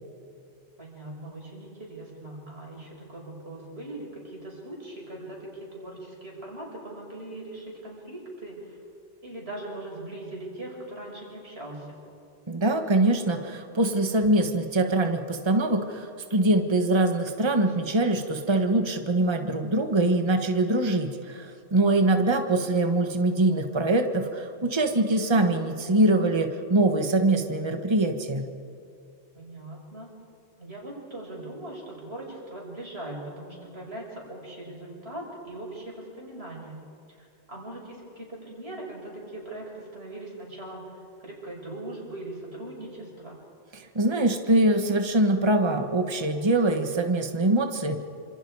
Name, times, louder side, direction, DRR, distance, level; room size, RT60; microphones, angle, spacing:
voice 1, 0.8-8.8 9.2-12.0 29.4-30.1 30.6-36.7 37.2-43.4, right 1 dB, 65° right, -2 dB, 6.1 m, -40 dB
voice 2, 12.5-28.5 43.7-48.0, right 2 dB, 25° right, 5 dB, 1.4 m, -23 dB
27.5 x 26.5 x 4.8 m, 2.5 s
omnidirectional pair, 1.2 m